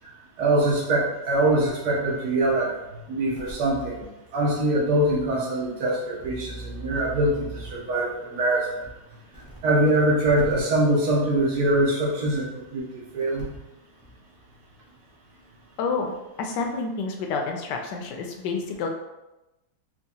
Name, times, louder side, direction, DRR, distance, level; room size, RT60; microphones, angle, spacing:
voice 1, 0.4-2.7 3.1-4.0 4.3-8.8 9.6-13.5, right 1 dB, 65° right, -4 dB, 1.3 m, -23 dB
sound 1, 3.4-4.0 4.7-4.8 5.2-5.3 6.2-7.9 8.8-8.9 9.3-9.9 10.2-10.6 12.1-12.2 13.2-13.7 14.0-14.1, right 1 dB, 25° left, 0.5 m, -39 dB
voice 2, 15.8-16.1 16.4-18.9, left 4 dB, 75° left, 3 dB, 1.2 m, -29 dB
4.5 x 2.4 x 2.8 m, 0.98 s
omnidirectional pair, 1.9 m